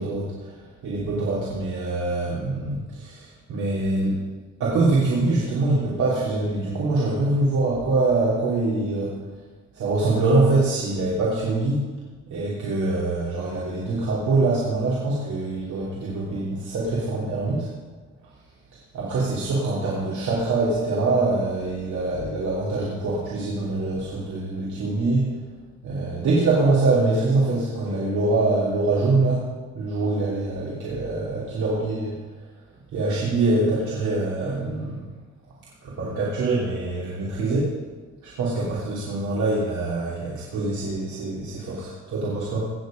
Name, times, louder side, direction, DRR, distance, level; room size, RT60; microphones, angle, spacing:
voice 1, 0.0-4.2 4.6-9.2 9.7-11.9 12.3-17.7 18.7-25.4 25.8-32.1 32.9-35.1 35.8-37.8 38.2-42.7, right 2 dB, 75° right, -6 dB, 3.1 m, -24 dB
18.0 x 7.2 x 5.2 m, 1.3 s
cardioid pair, 90°, 30 cm